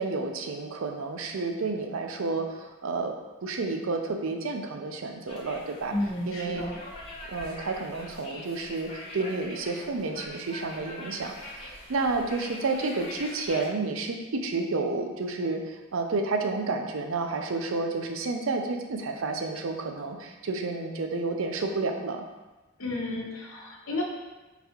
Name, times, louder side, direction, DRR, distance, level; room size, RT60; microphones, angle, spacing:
voice 1, 0.0-3.1 3.4-5.9 6.3-6.6 7.3-22.2, right 3 dB, 75° right, 5 dB, 0.5 m, -30 dB
sound 1, 5.3-13.7, left 1 dB, 30° left, 0.9 m, -43 dB
voice 2, 5.9-6.8 22.8-24.0, left 1 dB, 75° left, -2 dB, 1.0 m, -32 dB
4.5 x 4.0 x 2.8 m, 1.1 s
head